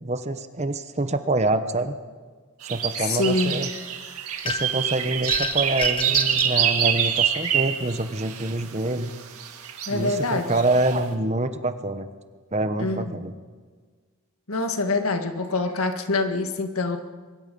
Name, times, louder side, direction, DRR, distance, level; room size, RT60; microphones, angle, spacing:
voice 1, 0.0-2.0 2.7-3.7 4.4-9.1 9.9-12.1 12.5-13.3, right 2 dB, 30° right, 10 dB, 1.0 m, -26 dB
sound 1, 2.6-8.5 9.4-10.2 10.6-11.0, right 9 dB, 90° right, 2.1 m, -25 dB
voice 2, 3.0-3.6 9.9-10.5 12.8-13.3 14.5-17.0, left 3 dB, 75° left, 6 dB, 1.8 m, -25 dB
sound 2, 4.5-4.9 5.3-6.6, left 4 dB, 25° left, 0.9 m, -30 dB
23.5 x 21.5 x 5.4 m, 1.5 s
head